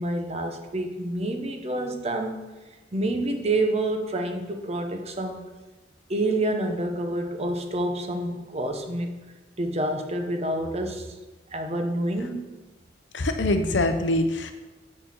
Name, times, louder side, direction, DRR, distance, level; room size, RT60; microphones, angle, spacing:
voice 1, 0.0-2.4 2.9-5.4 6.1-9.1 9.6-11.1 11.5-12.5, right 1 dB, 35° right, 5 dB, 0.9 m, -28 dB
voice 2, 13.1-14.5, left 1 dB, 75° left, 7 dB, 0.8 m, -24 dB
8.8 x 4.2 x 6.5 m, 1.2 s
head